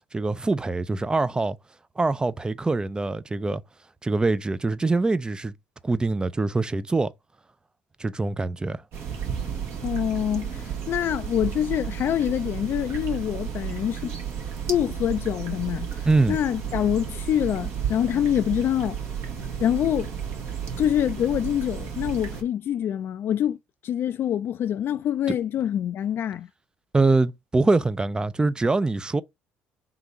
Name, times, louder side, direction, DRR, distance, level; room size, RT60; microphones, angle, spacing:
voice 1, 0.1-1.6 2.0-3.6 4.0-5.5 5.8-7.1 8.0-8.8 16.0-16.4 25.3-25.4 26.9-29.2, right 3 dB, 15° right, 0.5 m, -24 dB
sound 1, 8.9-22.4, right 8 dB, 65° right, 1.6 m, -33 dB
voice 2, 9.8-14.1 14.7-19.0 19.6-20.1 20.8-23.6 23.8-26.5, left 10 dB, 55° left, 0.4 m, -25 dB
3.8 x 2.9 x 4.6 m
supercardioid pair, 70°, 5 cm